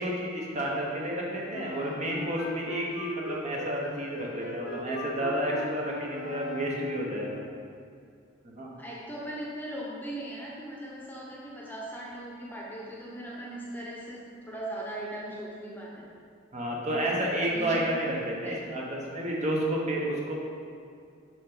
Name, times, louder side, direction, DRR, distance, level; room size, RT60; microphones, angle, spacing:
voice 1, 0.0-7.4 8.4-8.7 16.5-20.4, right 1 dB, 35° right, -3 dB, 1.1 m, -31 dB
Wind instrument woodwind instrument, 1.5-7.2, left 2 dB, 60° left, 0.7 m, -40 dB
voice 2, 8.8-16.1 17.4-17.8 18.4-18.6, right 1 dB, 10° left, -4 dB, 0.9 m, -39 dB
7.3 x 5.7 x 3.9 m, 2.3 s
head